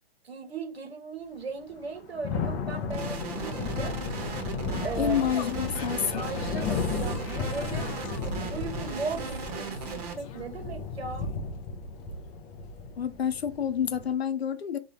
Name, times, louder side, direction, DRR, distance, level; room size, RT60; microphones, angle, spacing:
voice 1, 0.2-4.0 4.8-5.2 6.1-7.9 8.2-11.3, right 4 dB, 85° right, 1.4 m, -37 dB
Thunder / Rain, 1.7-14.1, left 4 dB, 10° left, 0.3 m, -34 dB
sound 1, 2.9-10.1, right 5 dB, 40° right, 1.1 m, -37 dB
sound 2, 4.6-10.8 11.1-11.4, left 8 dB, 35° left, 0.8 m, -43 dB
voice 2, 5.0-6.3 13.0-14.8, left 8 dB, 85° left, 0.7 m, -28 dB
3.8 x 2.8 x 4.8 m
hypercardioid pair, 130°, 30 cm